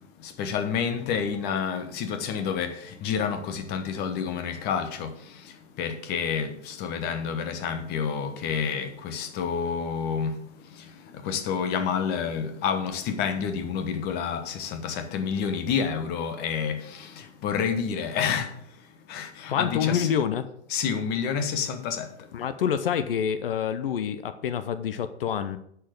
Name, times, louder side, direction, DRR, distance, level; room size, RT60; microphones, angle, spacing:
voice 1, 0.2-10.4 10.7-18.5 19.1-20.1 20.7-22.1, left 7 dB, 30° left, 1.2 m, -29 dB
voice 2, 19.5-20.4 22.3-25.6, left 8 dB, 55° left, 0.8 m, -27 dB
10.0 x 4.7 x 7.7 m
figure-of-eight pair, 105°, 33 cm